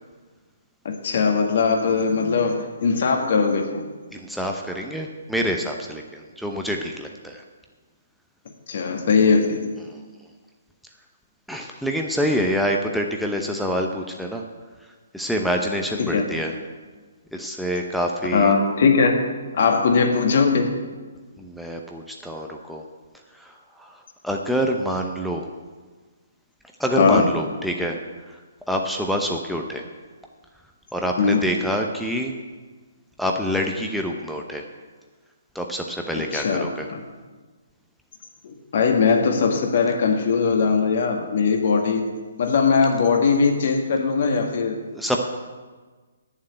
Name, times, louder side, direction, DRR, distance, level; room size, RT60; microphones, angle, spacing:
voice 1, 0.9-3.8 8.7-9.7 16.0-16.3 18.3-19.1 19.5-20.7 27.0-27.3 31.2-31.5 36.2-37.0 38.4-42.1 42.4-44.8, left 5 dB, 50° left, 3 dB, 1.8 m, -20 dB
voice 2, 4.1-7.4 9.9-10.0 11.5-14.4 15.1-16.5 17.3-18.5 21.4-22.8 23.4-23.5 23.8-24.0 24.2-25.5 26.8-28.0 28.3-28.4 28.7-29.8 30.9-32.3 33.2-34.6 35.5-36.9 44.9-45.2, equal, ahead, 1 dB, 0.8 m, -26 dB
8.8 x 7.3 x 8.9 m, 1.4 s
figure-of-eight pair, 130°, 0 cm